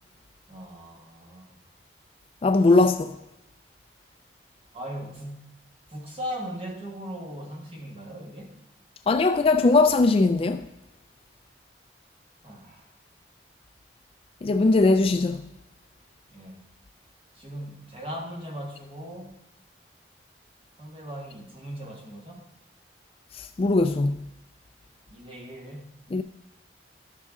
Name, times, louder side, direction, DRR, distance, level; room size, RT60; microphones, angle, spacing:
voice 1, 0.5-1.6 4.7-5.6 5.9-8.5 12.4-12.8 16.3-16.6 17.3-19.4 20.8-22.4 25.1-26.0, equal, 30° right, 1.5 m, -38 dB
voice 2, 2.4-3.1 9.1-10.7 14.4-15.5 23.6-24.1 26.1-26.2, left 3 dB, 30° left, 0.3 m, -20 dB
12.0 x 6.6 x 3.6 m
head